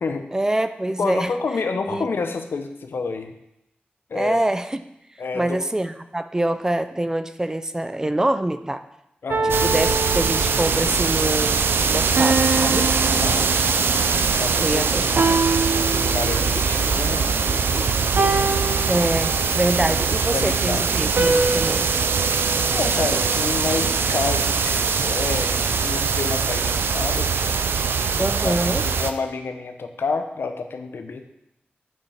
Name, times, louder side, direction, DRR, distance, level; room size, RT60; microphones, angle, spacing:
voice 1, 0.3-1.3 1.9-2.1 4.1-4.8 5.3-8.8 9.4-12.9 14.6-15.4 18.9-21.9 28.2-28.8, right 1 dB, 15° right, 10 dB, 0.4 m, -25 dB
voice 2, 1.0-3.3 4.1-4.4 5.2-5.6 9.2-9.6 13.2-13.5 14.4-15.3 15.8-18.9 19.9-20.9 22.2-27.3 27.7-28.6 28.8-31.3, left 4 dB, 90° left, 7 dB, 0.8 m, -30 dB
sound 1, 9.3-10.8 12.2-14.0 15.2-16.6 18.2-19.6 21.2-23.4, right 3 dB, 70° right, 0.8 m, -25 dB
sound 2, 9.5-29.1, right 5 dB, 90° right, 0.5 m, -22 dB
7.4 x 5.5 x 5.7 m, 0.84 s
wide cardioid pair, 110°, 4 cm